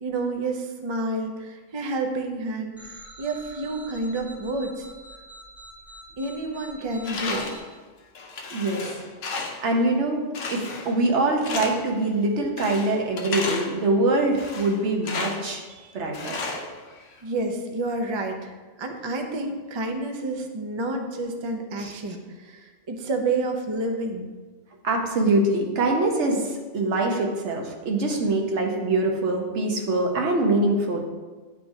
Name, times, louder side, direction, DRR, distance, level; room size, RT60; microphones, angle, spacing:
voice 1, 0.0-4.9 6.2-7.5 15.7-16.0 17.2-24.3, right 2 dB, 50° right, 3 dB, 0.3 m, -29 dB
sound 1, 2.8-7.6, right 2 dB, ahead, 1.5 m, -45 dB
Tools, 7.0-7.7 8.1-9.7 10.3-11.0 11.4-12.0 12.6-13.8 14.3-15.5 16.1-17.2, left 3 dB, 75° left, 1.0 m, -33 dB
voice 2, 8.5-8.9 9.6-10.2 10.5-15.6 15.9-16.4 21.8-21.9 24.8-31.0, right 2 dB, 65° right, 1 dB, 1.1 m, -24 dB
9.9 x 3.6 x 2.6 m, 1.3 s
omnidirectional pair, 1.3 m